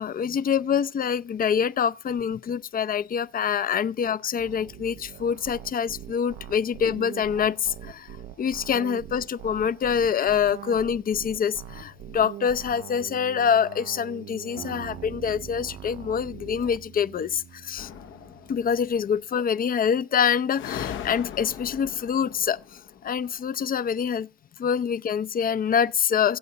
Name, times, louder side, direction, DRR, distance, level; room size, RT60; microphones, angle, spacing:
voice 1, 0.0-17.9 18.5-24.3 24.6-26.4, left 7 dB, 45° left, 0.6 m, -25 dB
sound 1, 4.4-16.8, right 10 dB, 80° right, 0.7 m, -43 dB
sound 2, 14.6-19.2, right 7 dB, 55° right, 1.1 m, -46 dB
sound 3, 17.8-18.9 20.5-23.4, left 9 dB, 75° left, 0.9 m, -39 dB
25.0 x 8.3 x 2.8 m
cardioid pair, 90°, 20 cm